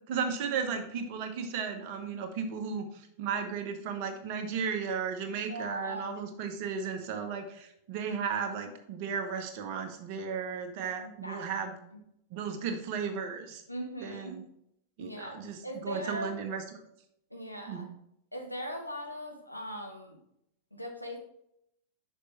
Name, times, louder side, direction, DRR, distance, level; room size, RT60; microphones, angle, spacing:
voice 1, 0.1-11.8 12.3-13.6 14.0-14.4 15.0-16.8 17.7-17.9, right 6 dB, 45° right, 6 dB, 1.2 m, -35 dB
voice 2, 5.5-6.2 11.0-11.4 13.7-14.4 15.0-16.3 17.3-17.9 18.3-20.2 20.7-21.2, equal, 90° left, 2 dB, 1.2 m, -39 dB
6.6 x 5.5 x 4.3 m, 0.76 s
figure-of-eight pair, 90°, 0 cm